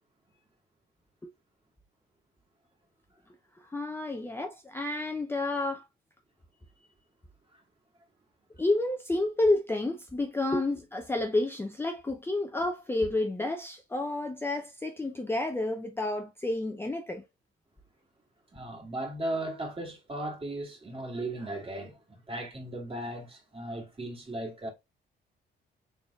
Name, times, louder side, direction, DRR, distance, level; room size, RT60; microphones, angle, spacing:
voice 1, 3.7-5.9 8.6-17.2, left 2 dB, 10° left, 0.5 m, -30 dB
voice 2, 18.5-24.7, right 1 dB, 25° right, 2.2 m, -36 dB
3.9 x 3.5 x 2.2 m
cardioid pair, 90°, 20 cm